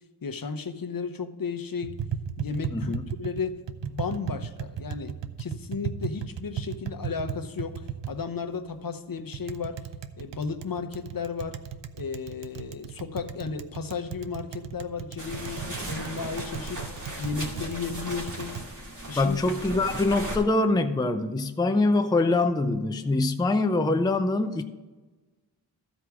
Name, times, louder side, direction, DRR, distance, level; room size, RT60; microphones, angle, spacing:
voice 1, 0.2-2.0 2.4-9.9 10.2-11.6 11.9-16.8 17.2-18.6 19.1-19.4, left 5 dB, 50° left, 7 dB, 0.8 m, -34 dB
Tap, 1.8-18.7, right 8 dB, 80° right, 0.7 m, -37 dB
voice 2, 2.7-3.0 19.1-24.6, left 2 dB, 10° left, 7 dB, 0.5 m, -24 dB
sound 1, 15.2-20.4, right 1 dB, 45° right, 2.3 m, -37 dB
13.0 x 4.7 x 6.1 m, 1.2 s
wide cardioid pair, 75°, 43 cm